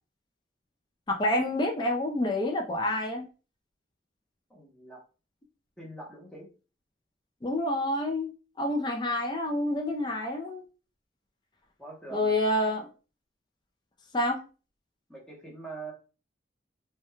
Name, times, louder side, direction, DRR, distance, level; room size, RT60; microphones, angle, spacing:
voice 1, 1.1-3.3 7.4-8.3 8.6-10.6 12.1-12.9 14.1-14.4, left 1 dB, 25° left, 1 dB, 0.4 m, -28 dB
voice 2, 4.5-5.0 5.8-6.5 11.8-12.4 15.1-15.9, right 3 dB, 5° left, -3 dB, 0.7 m, -43 dB
2.2 x 2.2 x 2.9 m, 0.34 s
head